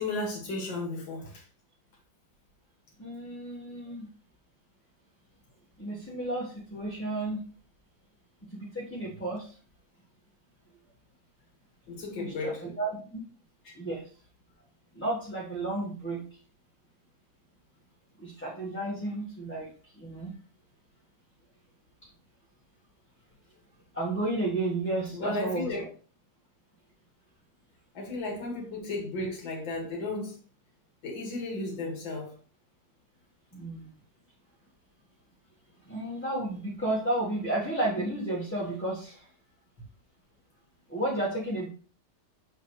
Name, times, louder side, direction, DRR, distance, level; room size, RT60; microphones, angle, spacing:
voice 1, 0.0-1.4 11.9-12.6 13.6-13.7 25.1-25.8 27.9-30.3 31.0-32.3, left 2 dB, 90° left, -1 dB, 2.6 m, -34 dB
voice 2, 3.0-4.1 5.8-7.4 8.5-9.4 12.2-13.2 13.7-14.0 14.9-16.2 18.2-19.7 20.0-20.3 23.9-25.7 28.0-28.1 33.5-33.9 35.9-39.2 40.9-41.7, right 2 dB, 5° left, -6 dB, 1.3 m, -32 dB
6.9 x 6.5 x 3.1 m, 0.41 s
omnidirectional pair, 2.0 m